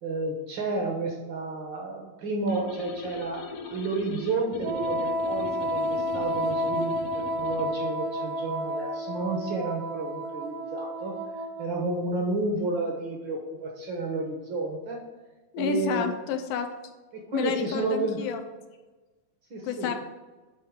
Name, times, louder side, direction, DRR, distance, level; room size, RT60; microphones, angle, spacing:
voice 1, 0.0-11.2 11.6-15.0 15.6-16.1 17.1-18.2 19.5-19.9, right 3 dB, 65° right, 1 dB, 1.2 m, -31 dB
sound 1, 2.5-7.7, left 3 dB, 70° left, 1.5 m, -41 dB
Wind instrument woodwind instrument, 4.6-12.0, equal, 85° right, 2.3 m, -31 dB
voice 2, 15.5-16.7 17.3-18.4 19.6-19.9, left 7 dB, 85° left, 5 dB, 2.2 m, -29 dB
9.6 x 3.9 x 5.1 m, 1.2 s
omnidirectional pair, 3.5 m